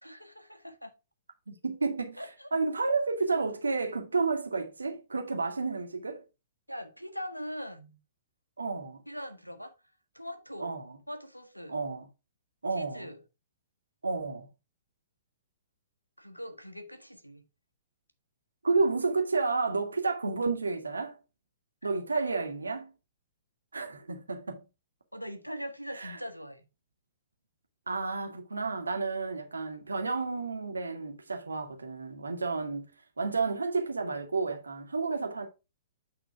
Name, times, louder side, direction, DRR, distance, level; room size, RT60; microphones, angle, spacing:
voice 1, 0.0-0.9 2.2-2.5 6.7-8.0 9.1-9.7 10.1-10.8 11.1-11.8 12.7-13.2 16.2-17.4 25.1-26.7, equal, 90° left, 1.1 m, -41 dB
voice 2, 1.5-2.2 2.5-6.2 8.6-9.0 10.6-10.9 11.7-12.1 12.6-13.1 14.0-14.5 18.6-21.2 21.8-22.9 23.7-24.6 25.9-26.2 27.9-32.9 33.2-35.5, right 4 dB, 75° right, 1.6 m, -31 dB
8.9 x 3.8 x 4.6 m
figure-of-eight pair, 115°, 0 cm